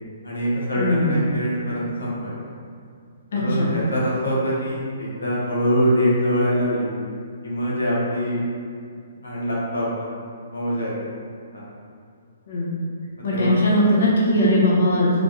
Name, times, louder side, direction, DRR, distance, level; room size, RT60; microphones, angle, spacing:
voice 1, 0.2-2.3 3.3-6.9 7.4-8.5 9.2-10.1 10.5-10.9 11.5-11.7 13.3-13.6, equal, 90° left, -6 dB, 0.8 m, -24 dB
voice 2, 0.7-1.2 3.3-3.8 12.5-12.7 13.2-15.2, left 1 dB, 65° left, -5 dB, 0.8 m, -20 dB
3.3 x 2.5 x 3.7 m, 2.3 s
hypercardioid pair, 130°, 0 cm